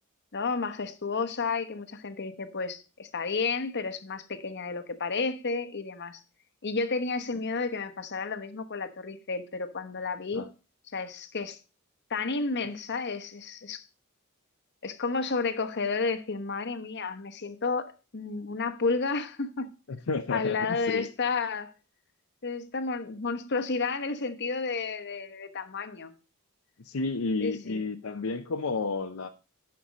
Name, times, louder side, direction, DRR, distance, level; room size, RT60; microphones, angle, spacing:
voice 1, 0.3-6.2 6.6-10.4 10.9-11.6 12.1-13.8 14.8-19.7 20.3-21.7 22.4-26.1 27.4-27.8, left 4 dB, 55° left, 1.0 m, -31 dB
voice 2, 20.1-21.1 26.8-29.3, left 3 dB, 75° left, 0.7 m, -31 dB
10.5 x 5.9 x 4.9 m
head